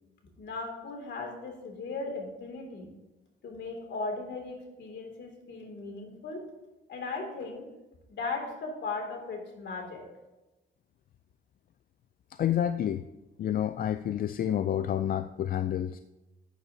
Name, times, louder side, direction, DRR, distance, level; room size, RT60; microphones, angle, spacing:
voice 1, 0.4-2.9 3.4-6.4 6.9-7.7 8.1-10.0, left 3 dB, 65° left, 2 dB, 2.5 m, -37 dB
voice 2, 12.4-13.1 13.4-16.0, left 10 dB, 45° left, 11 dB, 0.4 m, -29 dB
12.0 x 9.0 x 2.7 m, 1.0 s
cardioid pair, 90°, 20 cm